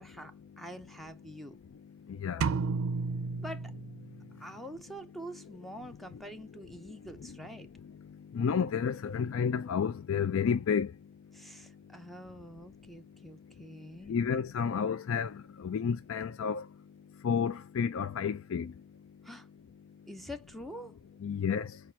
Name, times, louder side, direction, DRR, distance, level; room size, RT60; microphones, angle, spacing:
voice 1, 0.0-1.6 3.4-3.7 4.4-7.7 11.3-14.2 19.2-19.5 20.1-20.9, equal, ahead, 0.5 m, -45 dB
voice 2, 2.1-2.5 6.1-6.2 7.2-7.9 8.3-10.9 14.1-16.7 17.2-18.7 21.2-21.8, left 6 dB, 70° left, 0.4 m, -31 dB
sound 1, 2.4-4.4, right 4 dB, 75° right, 0.4 m, -32 dB
5.9 x 2.4 x 2.7 m
head